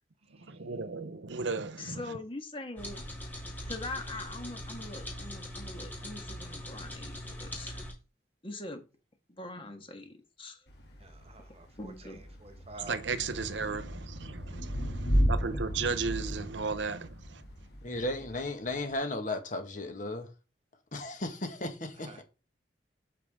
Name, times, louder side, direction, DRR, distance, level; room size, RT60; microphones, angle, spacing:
voice 1, 0.3-2.2 12.8-17.5, right 4 dB, 85° right, 0.9 m, -35 dB
voice 2, 1.8-3.0 3.7-7.8 8.4-8.8 9.3-10.7 11.8-12.2, left 2 dB, 30° left, 1.6 m, -42 dB
sound 1, 2.8-7.9, left 1 dB, 10° left, 2.8 m, -41 dB
Thunder / Rain, 10.7-18.9, equal, 65° left, 2.6 m, -34 dB
voice 3, 11.0-13.0 22.0-22.2, right 2 dB, 35° right, 1.3 m, -49 dB
voice 4, 17.8-20.3 20.9-22.2, left 2 dB, 45° left, 1.6 m, -35 dB
8.5 x 6.0 x 3.6 m
head